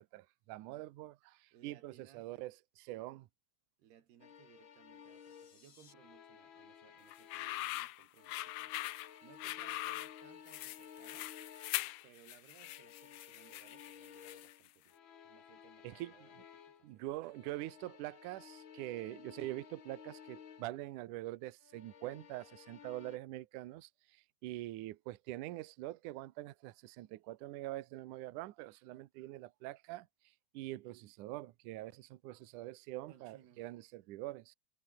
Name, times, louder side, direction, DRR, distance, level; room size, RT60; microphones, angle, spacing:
voice 1, 0.0-3.3 15.8-16.3 16.8-30.1 30.5-34.5, right 16 dB, 90° right, 1.7 m, -44 dB
voice 2, 1.5-2.5 3.8-8.8 9.2-11.3 12.0-15.0 15.2-17.3 33.1-33.7, right 10 dB, 70° right, 4.2 m, -64 dB
sound 1, 4.2-7.8 8.2-12.0 12.5-16.9 17.2-20.8 21.6-23.2, left 8 dB, 75° left, 1.1 m, -56 dB
sound 2, 4.9-5.9, left 6 dB, 50° left, 5.5 m, -65 dB
sound 3, 7.1-14.7, left 17 dB, 90° left, 1.9 m, -42 dB
omnidirectional pair, 5.0 m